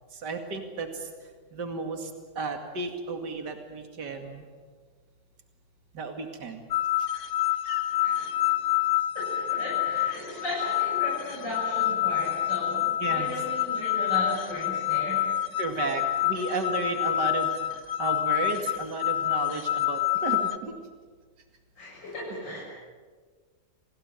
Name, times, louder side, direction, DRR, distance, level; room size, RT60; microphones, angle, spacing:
voice 1, 0.1-1.1 1.5-2.1 2.4-4.5 5.9-6.6 7.6-7.8 13.0-13.3 15.6-17.5 18.0-20.7 22.3-22.4, right 3 dB, 70° right, 5 dB, 2.9 m, -33 dB
sound 1, 6.7-20.6, left 13 dB, 55° left, 1.4 m, -27 dB
voice 2, 8.0-8.6 9.1-15.3 15.7-15.9 21.8-22.6, left 1 dB, 80° left, -5 dB, 7.5 m, -36 dB
28.5 x 19.0 x 9.1 m, 1.5 s
omnidirectional pair, 1.9 m